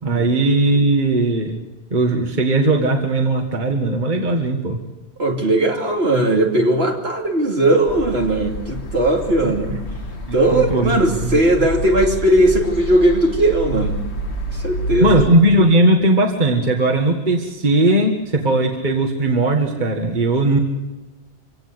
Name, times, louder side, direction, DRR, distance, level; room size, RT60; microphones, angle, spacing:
voice 1, 0.0-1.6 1.9-4.8 9.4-9.5 10.3-11.7 15.0-20.6, right 2 dB, 45° right, 3 dB, 1.9 m, -18 dB
voice 2, 5.2-9.7 10.3-14.0 14.5-15.2, right 1 dB, 70° right, 2 dB, 3.1 m, -18 dB
sound 1, 7.9-15.3, equal, 80° left, 2.2 m, -28 dB
25.5 x 17.0 x 8.0 m, 1.1 s
omnidirectional pair, 1.1 m